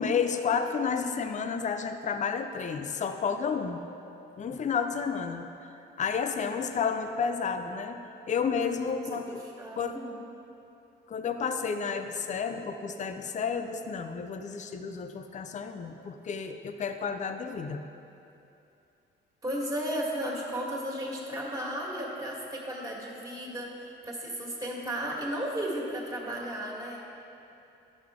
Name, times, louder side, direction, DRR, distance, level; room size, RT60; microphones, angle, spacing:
voice 1, 0.0-3.8 4.4-5.7 6.0-8.0 8.3-9.4 9.8-9.9 11.1-17.8, left 6 dB, 35° left, 7 dB, 0.5 m, -31 dB
voice 2, 8.5-10.1 19.4-23.7 24.0-27.0, equal, 15° right, -3 dB, 1.8 m, -34 dB
11.0 x 6.2 x 3.6 m, 2.8 s
cardioid pair, 90°, 20 cm